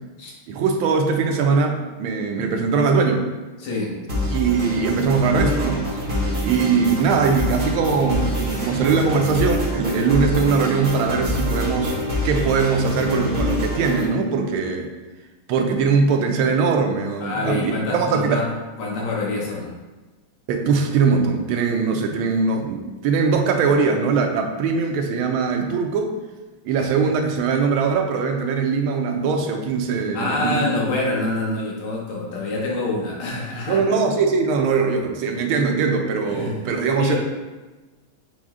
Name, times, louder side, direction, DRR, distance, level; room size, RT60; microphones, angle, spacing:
voice 1, 0.5-3.3 4.3-5.8 6.4-11.9 12.2-14.9 15.5-18.4 20.5-26.2 26.6-30.6 33.7-37.2, right 5 dB, 80° right, 3 dB, 1.4 m, -21 dB
voice 2, 3.6-4.0 17.2-19.7 26.8-26.9 30.1-33.9 36.2-37.2, left 2 dB, 85° left, -2 dB, 1.8 m, -26 dB
sound 1, 4.1-14.1, left 1 dB, 45° right, 0.6 m, -25 dB
6.1 x 2.1 x 3.5 m, 1.2 s
omnidirectional pair, 2.3 m